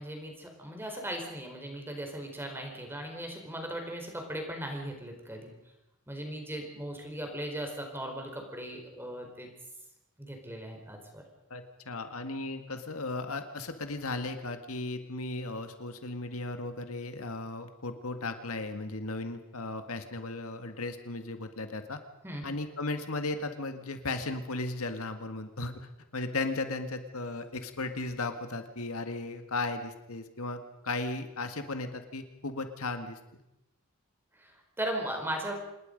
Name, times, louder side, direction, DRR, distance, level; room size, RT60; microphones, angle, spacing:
voice 1, 0.0-5.5 6.1-9.5 10.2-11.2 22.2-22.5 34.4-35.5, right 1 dB, 10° right, 3 dB, 4.4 m, -38 dB
voice 2, 11.5-22.0 22.4-33.2, left 2 dB, 80° left, 7 dB, 1.9 m, -36 dB
27.0 x 20.0 x 5.3 m, 0.89 s
head